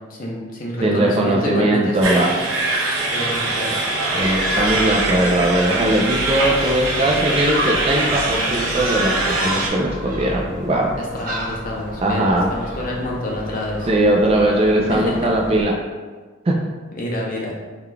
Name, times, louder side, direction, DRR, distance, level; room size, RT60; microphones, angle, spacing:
voice 1, 0.1-2.2 3.1-3.8 11.1-13.9 14.9-15.2 16.9-17.5, left 1 dB, 40° left, -3 dB, 0.8 m, -27 dB
voice 2, 0.8-2.3 4.1-10.9 12.0-12.5 13.9-15.8 16.5-16.6, right 1 dB, 30° right, 0 dB, 0.4 m, -19 dB
sound 1, 2.0-9.7, right 2 dB, 90° right, 0.8 m, -22 dB
Gull seagull, 4.2-15.6, equal, 45° right, 0.8 m, -32 dB
4.7 x 3.7 x 2.2 m, 1.4 s
head